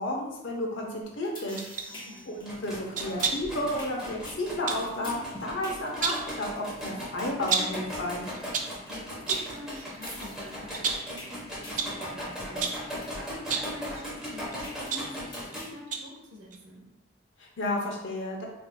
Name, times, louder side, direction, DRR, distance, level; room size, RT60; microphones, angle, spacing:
voice 1, 0.0-1.6 2.3-8.2 17.4-18.5, left 1 dB, 70° left, -1 dB, 0.8 m, -32 dB
sound 1, 1.3-15.7, left 1 dB, 25° left, 1.1 m, -45 dB
sound 2, 1.6-1.9 2.9-3.6 4.7-4.9 5.8-6.3 7.5-7.8 8.3-8.8 9.3-9.6 10.1-10.2 10.7-11.2 11.8-12.0 12.6-12.9 13.4-13.8 14.5-15.6 15.9-16.2 16.5-16.6, right 5 dB, 40° right, 0.3 m, -31 dB
voice 2, 1.9-2.3 8.9-16.8, equal, 80° right, 0 dB, 0.8 m, -45 dB
sound 3, 2.3-15.6, equal, 5° right, 0.9 m, -38 dB
4.6 x 2.5 x 2.2 m, 0.92 s
head